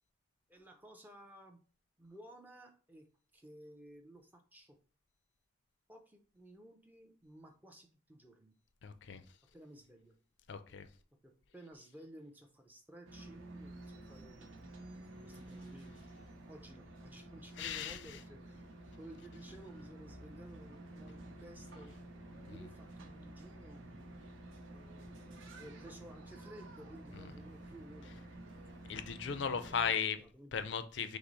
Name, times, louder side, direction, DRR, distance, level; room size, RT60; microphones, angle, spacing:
voice 1, 0.5-1.6 2.0-3.1 3.3-4.8 5.9-8.6 9.5-10.1 11.2-14.8 15.2-18.6 19.0-22.0 22.5-23.8 24.7-28.6 29.7-30.6, right 1 dB, 10° right, 0.5 m, -55 dB
voice 2, 8.8-9.2 10.5-10.9 17.6-18.0 22.4-22.6 27.1-27.2 28.9-30.2 30.5-31.2, left 7 dB, 60° left, 0.4 m, -36 dB
sound 1, 13.1-29.9, right 1 dB, 70° right, 0.7 m, -51 dB
5.9 x 2.0 x 3.9 m
head